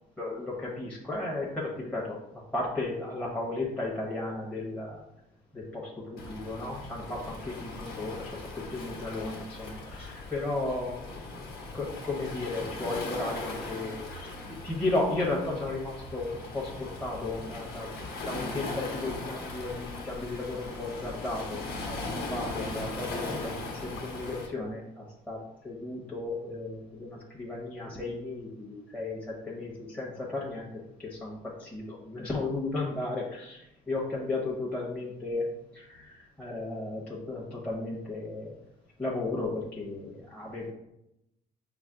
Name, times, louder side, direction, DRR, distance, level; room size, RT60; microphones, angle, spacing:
voice 1, 0.2-2.2 2.5-5.0 5.5-17.9 18.1-35.4 35.7-38.5 39.0-40.7, left 2 dB, 5° left, -5 dB, 1.0 m, -35 dB
Waves surf, 6.2-24.5, left 2 dB, 70° left, 1.1 m, -39 dB
5.8 x 2.0 x 3.7 m, 0.82 s
cardioid pair, 110°, 17 cm